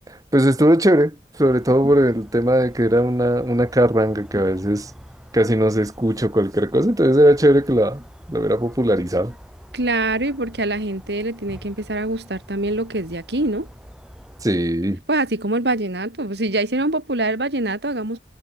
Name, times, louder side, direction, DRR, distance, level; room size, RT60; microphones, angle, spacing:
voice 1, 0.1-4.9 5.3-8.0 8.3-9.3 14.4-15.0, equal, 20° right, 1.7 m, -18 dB
sound 1, 1.3-14.5, equal, 5° right, 6.8 m, -45 dB
voice 2, 9.7-13.7 15.1-18.2, right 2 dB, 80° right, 3.0 m, -24 dB
head